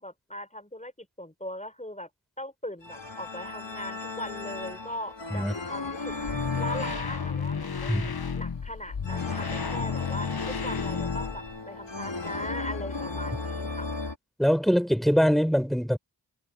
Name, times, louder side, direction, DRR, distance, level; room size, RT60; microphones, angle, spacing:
voice 1, 0.0-2.1 2.4-6.1 6.6-13.9, left 1 dB, 15° left, 5.2 m, -39 dB
sound 1, 2.8-14.1, left 3 dB, 80° left, 3.9 m, -36 dB
sound 2, 6.1-11.6, left 6 dB, 60° left, 1.0 m, -32 dB
voice 2, 14.4-16.0, equal, ahead, 4.5 m, -23 dB
wide cardioid pair, 45°, 43 cm